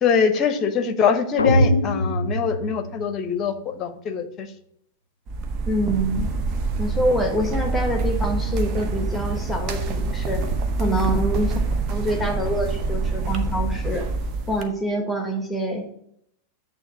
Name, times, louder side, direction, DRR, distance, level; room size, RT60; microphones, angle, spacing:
voice 1, 0.0-4.5 10.8-10.9, left 6 dB, 30° left, 9 dB, 0.8 m, -23 dB
sound 1, 1.4-3.5, left 1 dB, 75° left, 0.3 m, -22 dB
sound 2, 5.3-14.6, right 3 dB, 35° right, 0.8 m, -26 dB
voice 2, 5.6-6.3 6.8-10.4 10.8-11.5 11.9-14.1 14.5-15.9, right 1 dB, 5° left, 3 dB, 1.3 m, -25 dB
8.7 x 3.0 x 6.1 m, 0.73 s
figure-of-eight pair, 90°, 0 cm